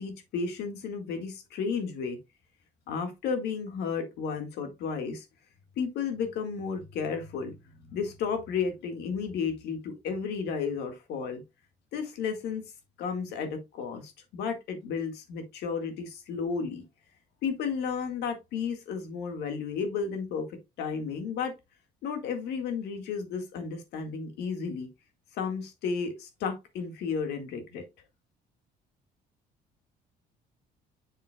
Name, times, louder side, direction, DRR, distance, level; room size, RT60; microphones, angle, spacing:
voice 1, 0.0-2.2 2.9-5.3 5.8-7.6 7.9-11.4 11.9-12.6 13.0-16.8 17.4-21.5 22.0-24.9 25.3-27.8, left 5 dB, 80° left, 1.8 m, -33 dB
7.3 x 6.9 x 2.3 m
cardioid pair, 110°, 17 cm